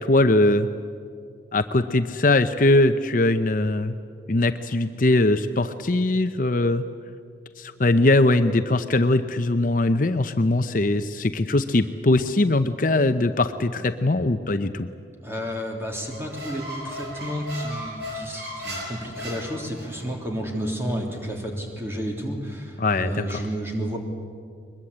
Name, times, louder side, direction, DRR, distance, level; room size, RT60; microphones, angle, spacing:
voice 1, 0.0-0.7 1.5-3.9 4.3-6.8 7.6-14.9 22.8-23.5, left 2 dB, 45° left, 9 dB, 0.7 m, -21 dB
voice 2, 15.2-24.0, equal, 15° right, 1 dB, 3.3 m, -31 dB
Squeak, 16.0-20.1, equal, 60° right, 7.3 m, -36 dB
22.5 x 21.0 x 8.7 m, 2.2 s
head